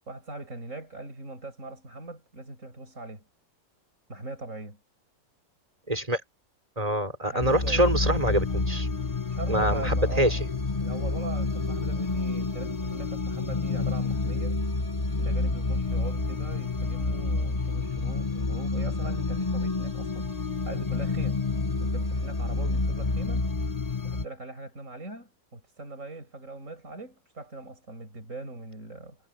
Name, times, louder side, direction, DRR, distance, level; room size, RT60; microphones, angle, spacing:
voice 1, 0.1-3.2 4.1-4.8 7.3-7.8 9.3-10.4 10.8-14.6 15.2-20.3 20.6-21.4 21.8-23.5 24.0-29.2, right 2 dB, 40° right, 7.6 m, -41 dB
voice 2, 5.9-6.2 6.8-8.9 9.5-10.4, right 1 dB, 20° right, 4.5 m, -25 dB
sound 1, 7.4-24.3, left 3 dB, 20° left, 1.4 m, -29 dB
omnidirectional pair, 2.0 m